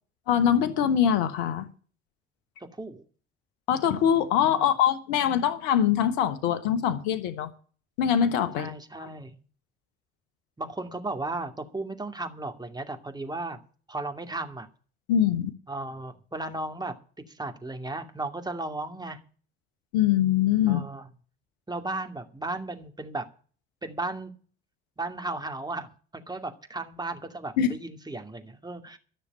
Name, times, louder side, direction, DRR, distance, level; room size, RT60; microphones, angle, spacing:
voice 1, 0.3-1.7 3.7-7.5 8.0-8.7 9.0-9.1 15.1-15.5 19.9-20.8 27.6-27.7, left 9 dB, 70° left, 1.3 m, -23 dB
voice 2, 2.7-3.0 8.6-9.4 10.6-13.6 13.9-14.7 15.7-16.9 17.3-19.2 20.7-21.1 21.7-23.3 23.8-24.3 25.0-29.0, right 2 dB, 10° right, 2.5 m, -35 dB
13.5 x 6.7 x 9.9 m
hypercardioid pair, 55°, 32 cm